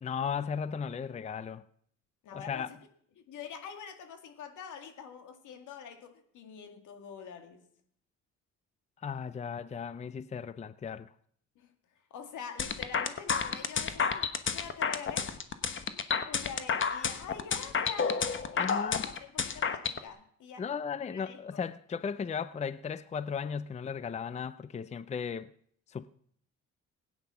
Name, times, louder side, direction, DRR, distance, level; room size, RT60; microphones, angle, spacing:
voice 1, 0.0-1.6 2.3-2.7 9.0-11.1 18.6-19.1 20.6-25.5 25.9-26.1, left 6 dB, 25° left, 0.5 m, -36 dB
voice 2, 2.2-2.8 3.2-7.6 11.6-11.7 12.1-15.4 16.3-20.6 21.1-21.6, left 7 dB, 80° left, 2.0 m, -45 dB
sound 1, 12.6-20.0, left 6 dB, 40° left, 1.2 m, -30 dB
16.5 x 9.6 x 5.8 m
cardioid pair, 90°, 30 cm